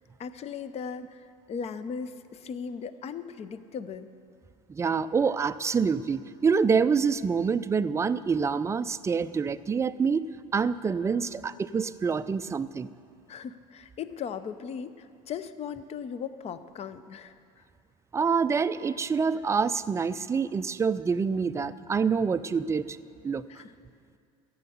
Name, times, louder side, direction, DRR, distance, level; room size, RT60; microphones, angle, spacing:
voice 1, 0.2-4.1 13.3-17.3 23.5-23.7, left 6 dB, 35° left, 13 dB, 0.7 m, -38 dB
voice 2, 4.7-10.3 10.5-12.9 18.1-23.0 23.2-23.4, right 5 dB, 15° right, 13 dB, 0.4 m, -26 dB
14.0 x 9.4 x 7.1 m, 2.4 s
supercardioid pair, 95°, 17 cm